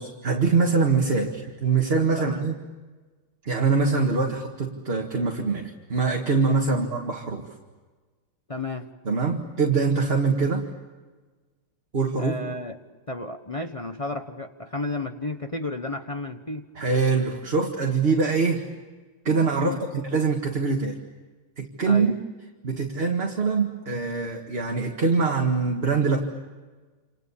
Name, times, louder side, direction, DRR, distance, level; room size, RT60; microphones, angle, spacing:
voice 1, 0.0-2.5 3.4-7.5 9.1-10.6 11.9-12.4 16.8-18.6 19.2-19.7 20.1-21.0 21.6-22.1 22.6-26.2, right 4 dB, 30° right, 1 dB, 1.9 m, -23 dB
voice 2, 8.5-8.9 12.2-12.8 13.1-16.7 19.6-19.8 21.8-22.1, left 2 dB, 30° left, 5 dB, 0.6 m, -32 dB
28.5 x 27.5 x 7.3 m, 1.3 s
omnidirectional pair, 2.4 m